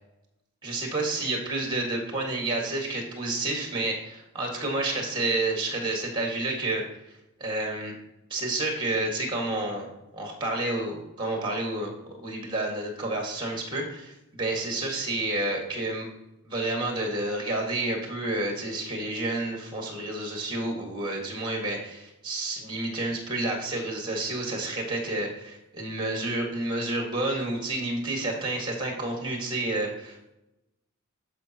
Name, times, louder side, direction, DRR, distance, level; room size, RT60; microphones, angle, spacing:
voice 1, 0.6-6.8 7.4-7.9 8.3-9.9 10.1-16.1 16.4-30.3, right 2 dB, 20° right, 1 dB, 1.7 m, -30 dB
13.0 x 5.2 x 2.9 m, 0.91 s
head